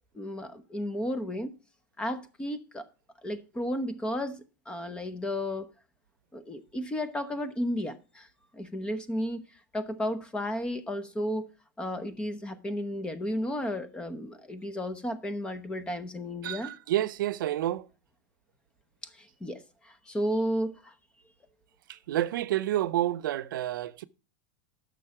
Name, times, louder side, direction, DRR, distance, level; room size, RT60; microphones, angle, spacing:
voice 1, 0.1-1.5 2.0-2.9 3.2-5.7 6.3-8.3 8.5-9.4 9.7-11.5 11.8-16.7 19.0-20.9, equal, 10° left, 0.8 m, -33 dB
voice 2, 16.4-17.8 22.1-24.0, right 13 dB, 80° right, 0.7 m, -29 dB
11.5 x 6.4 x 4.8 m
supercardioid pair, 155°, 11 cm